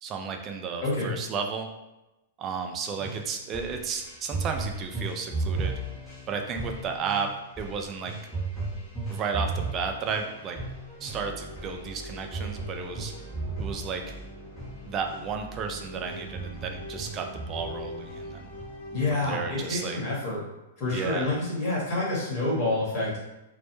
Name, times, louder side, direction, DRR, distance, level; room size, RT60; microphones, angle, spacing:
voice 1, 0.0-1.7 2.4-5.8 6.3-7.3 7.6-8.1 9.1-10.6 11.0-13.1 13.6-14.0 14.8-18.5 19.1-20.0 20.9-21.3, right 5 dB, 30° right, 4 dB, 0.3 m, -33 dB
voice 2, 0.8-1.1 18.9-20.4 20.8-23.1, left 2 dB, 40° left, -5 dB, 1.0 m, -28 dB
sound 1, 3.0-15.2 15.6-15.8 16.1-18.2 18.6-19.1 19.6-19.7, right 3 dB, 5° right, 0.9 m, -36 dB
sound 2, 11.1-19.1, equal, 65° left, 0.6 m, -42 dB
2.0 x 2.0 x 3.0 m, 0.98 s
hypercardioid pair, 110°, 0 cm